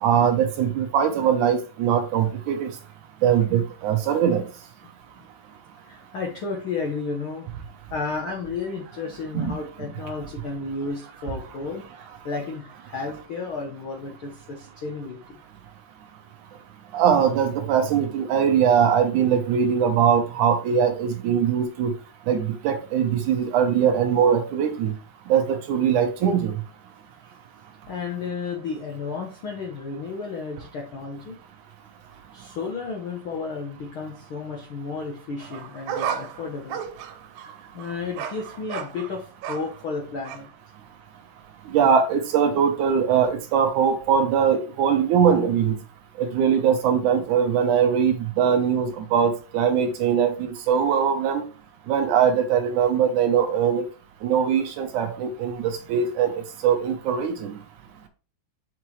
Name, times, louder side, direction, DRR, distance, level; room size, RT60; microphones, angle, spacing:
voice 1, 0.0-2.7 3.2-4.4 9.3-9.5 16.9-21.9 22.3-24.9 25.3-26.5 41.7-45.7 46.2-51.4 51.9-53.8 54.2-56.3 56.6-57.6, right 7 dB, 70° right, 6 dB, 2.1 m, -21 dB
voice 2, 5.9-7.5 7.9-15.4 27.9-31.4 32.3-36.8 37.7-40.5, left 4 dB, 85° left, 1 dB, 1.1 m, -32 dB
sound 1, 35.4-39.8 40.2-40.4, right 8 dB, 90° right, 2.6 m, -34 dB
6.0 x 5.9 x 3.1 m, 0.36 s
omnidirectional pair, 4.0 m